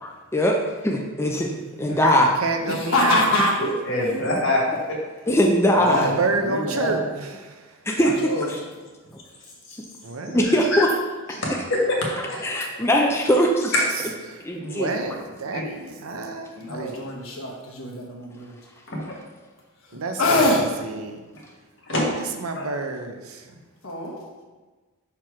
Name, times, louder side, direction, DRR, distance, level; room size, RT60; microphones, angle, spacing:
voice 1, 0.0-2.3 5.3-6.1 7.9-8.3 10.3-10.9 12.4-13.7 14.4-15.2, equal, 10° left, 0 dB, 0.5 m, -21 dB
voice 2, 2.1-3.3 5.9-7.0 7.4-7.5 10.0-10.5 14.3-17.0 19.9-21.2 22.0-23.4, right 3 dB, 85° right, 5 dB, 0.7 m, -29 dB
voice 3, 2.7-3.6 4.1-4.2 5.7-7.0 8.0-8.5 16.7-18.6 20.2-20.7 23.8-24.2, left 1 dB, 75° left, -2 dB, 1.4 m, -24 dB
voice 4, 3.6-5.0 11.4-12.0 12.3-12.4 13.7-13.8 14.6-14.7 15.5-15.6 18.9-19.0 21.9-22.0 22.5-22.7, left 1 dB, 60° left, -3 dB, 1.9 m, -24 dB
6.0 x 4.5 x 4.8 m, 1.3 s
head